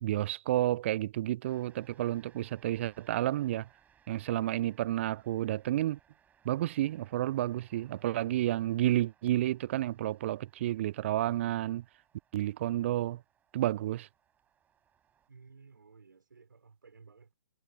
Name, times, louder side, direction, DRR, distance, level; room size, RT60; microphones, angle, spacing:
voice 1, 0.0-3.7 4.1-6.0 6.5-11.8 12.3-13.2 13.5-14.1, right 14 dB, 35° right, 0.4 m, -30 dB
sound 1, 1.4-15.3, right 8 dB, 15° right, 5.9 m, -67 dB
voice 2, 15.3-17.3, right 5 dB, 65° right, 6.3 m, -56 dB
figure-of-eight pair, 120°, 11 cm